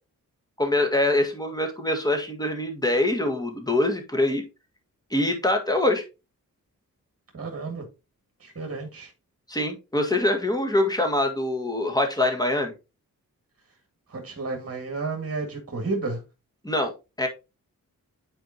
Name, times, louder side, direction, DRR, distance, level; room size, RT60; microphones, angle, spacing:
voice 1, 0.6-4.4 5.1-6.0 9.5-12.7 16.6-16.9 17.2-17.3, left 1 dB, 10° left, 4 dB, 1.7 m, -24 dB
voice 2, 7.3-7.9 8.4-9.1 14.1-16.2, right 3 dB, 40° right, 3 dB, 2.1 m, -31 dB
8.8 x 4.4 x 2.8 m, 0.27 s
cardioid pair, 75°, 35 cm